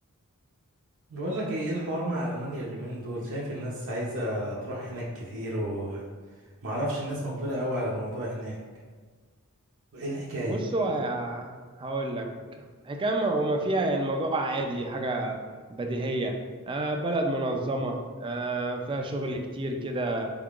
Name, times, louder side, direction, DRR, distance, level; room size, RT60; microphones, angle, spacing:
voice 1, 1.1-6.0 6.6-8.6 9.9-10.6, right 1 dB, 60° right, -5 dB, 0.6 m, -32 dB
voice 2, 10.4-11.5 11.8-12.3 12.9-15.4 15.7-16.3 16.7-20.3, right 2 dB, 20° right, 3 dB, 0.3 m, -29 dB
3.7 x 3.6 x 2.4 m, 1.5 s
head